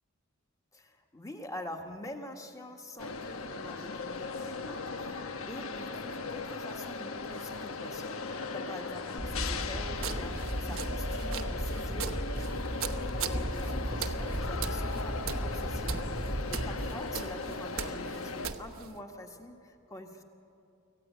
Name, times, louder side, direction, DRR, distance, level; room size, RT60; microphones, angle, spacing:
voice 1, 0.7-12.5 13.3-16.1 16.5-20.2, left 1 dB, 15° left, 4 dB, 1.6 m, -46 dB
sound 1, 3.0-18.5, left 4 dB, 75° left, 1.1 m, -38 dB
sound 2, 9.2-17.0, right 1 dB, 15° right, 0.7 m, -36 dB
sound 3, 10.0-19.0, right 6 dB, 70° right, 1.1 m, -41 dB
25.5 x 15.5 x 9.2 m, 2.7 s
head